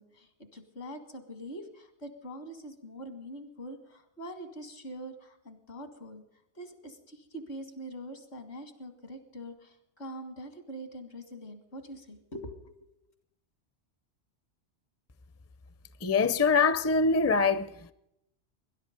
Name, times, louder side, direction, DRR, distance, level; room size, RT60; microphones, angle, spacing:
voice 1, 0.0-6.2 6.5-12.7, equal, 75° left, 2.4 m, -44 dB
voice 2, 16.0-17.7, left 4 dB, 20° left, 0.5 m, -23 dB
20.5 x 11.0 x 5.2 m
omnidirectional pair, 1.1 m